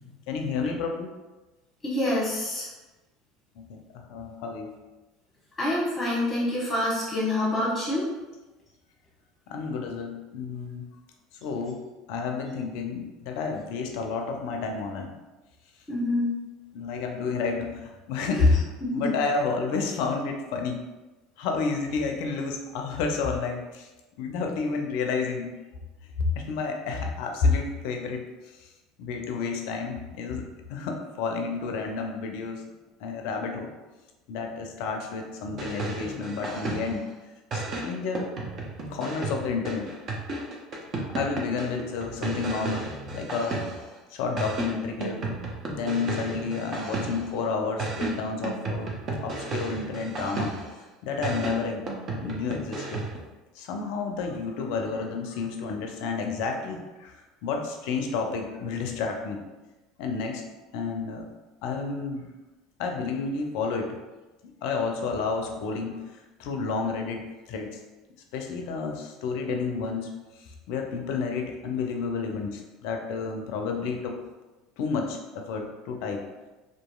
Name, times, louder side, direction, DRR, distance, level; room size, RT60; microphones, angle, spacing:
voice 1, 0.3-1.1 3.6-4.7 9.5-10.9 11.4-11.8 12.1-15.1 16.7-20.9 21.4-23.9 24.2-25.5 26.4-28.2 28.6-28.7 29.0-30.4 30.7-32.6 33.0-33.7 34.3-37.0 37.5-38.3 38.9-39.9 41.0-43.6 44.1-48.9 49.2-50.5 51.0-51.8 52.2-53.0 53.6-57.1 57.4-59.4 60.0-60.4 60.7-61.3 61.6-62.3 62.8-64.0 64.6-66.0 66.4-67.8 68.3-70.1 70.7-74.2 74.8-76.2, left 4 dB, 70° left, 3 dB, 0.4 m, -30 dB
voice 2, 1.8-2.7 5.6-8.1 15.9-16.3 18.3-18.5 18.8-19.1, left 1 dB, 15° left, -6 dB, 1.0 m, -27 dB
sound 1, 35.5-37.1 37.5-44.0 44.4-47.4 47.8-50.8 51.2-53.3, right 2 dB, 45° right, 0.6 m, -33 dB
2.8 x 2.5 x 2.3 m, 1.1 s
hypercardioid pair, 75°, 0 cm